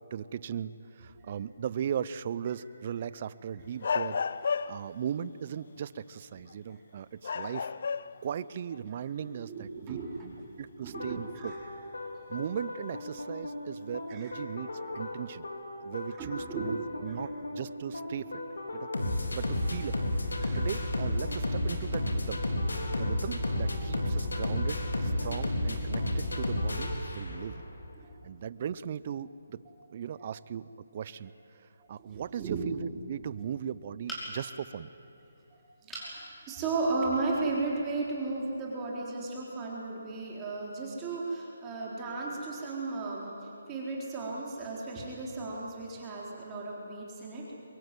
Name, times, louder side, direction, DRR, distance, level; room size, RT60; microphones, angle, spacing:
voice 1, 0.1-7.7 8.2-10.0 10.6-11.5 12.3-15.5 15.8-18.4 18.7-18.9 19.3-20.1 20.5-22.4 22.9-27.7 28.2-29.6 29.9-34.9, right 8 dB, 40° right, 17 dB, 0.7 m, -38 dB
sound 1, 3.8-5.0 6.5-6.7 7.2-8.3 8.7-8.8 11.3-11.4 12.9-13.2, left 5 dB, 55° left, 0.6 m, -32 dB
voice 2, 9.3-10.3 10.8-11.6 14.1-14.3 16.2-16.8 17.1-17.3 20.4-20.7 27.3-27.4 27.9-28.1 31.8-32.7 35.5-47.6, right 3 dB, 20° right, -4 dB, 4.1 m, -35 dB
sound 2, 10.9-27.6, left 1 dB, 90° left, 3.9 m, -33 dB
sound 3, 34.1-34.6 35.9-36.2 36.7-36.8 37.2-37.3, right 1 dB, 5° left, 5.4 m, -39 dB
23.5 x 22.5 x 9.3 m, 2.8 s
hypercardioid pair, 155°, 0 cm